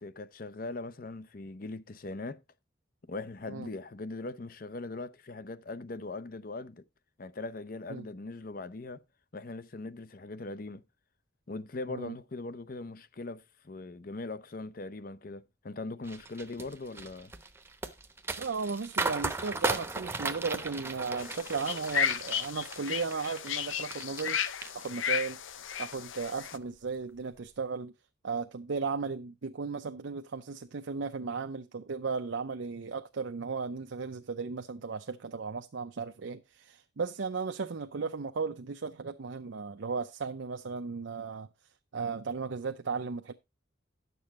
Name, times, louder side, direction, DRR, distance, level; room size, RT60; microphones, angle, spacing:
voice 1, 0.0-2.4 3.0-6.8 7.2-9.0 9.3-10.8 11.5-17.3, left 2 dB, 45° left, 0.6 m, -40 dB
sound 1, 16.1-24.3 24.6-25.3 25.7-25.9, right 3 dB, 10° right, 0.8 m, -36 dB
voice 2, 18.4-24.4 24.7-25.4 25.8-27.9 28.2-41.5 41.9-43.3, right 5 dB, 80° right, 0.6 m, -35 dB
sound 2, 21.2-26.6, left 8 dB, 85° left, 0.7 m, -34 dB
10.5 x 6.9 x 4.2 m
head